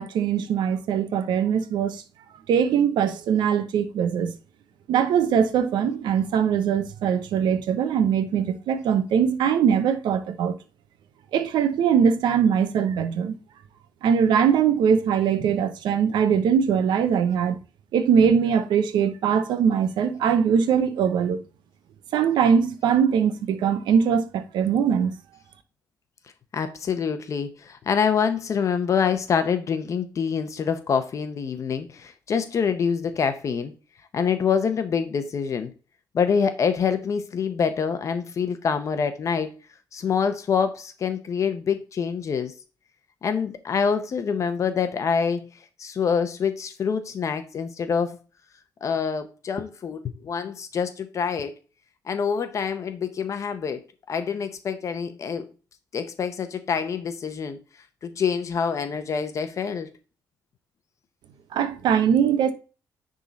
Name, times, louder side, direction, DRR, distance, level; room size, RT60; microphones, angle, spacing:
voice 1, 0.0-2.0 2.5-4.3 4.9-10.5 11.3-13.4 14.0-17.6 17.9-21.4 22.1-25.1 61.5-62.5, right 7 dB, 90° right, 0.9 m, -21 dB
voice 2, 26.5-33.7 34.1-35.7 36.1-39.5 39.9-42.5 43.2-45.5 45.8-48.2 48.8-51.5 52.1-55.5 55.9-57.6 58.0-59.9, left 6 dB, 45° left, 0.8 m, -26 dB
10.5 x 3.8 x 4.1 m
cardioid pair, 150°, 7 cm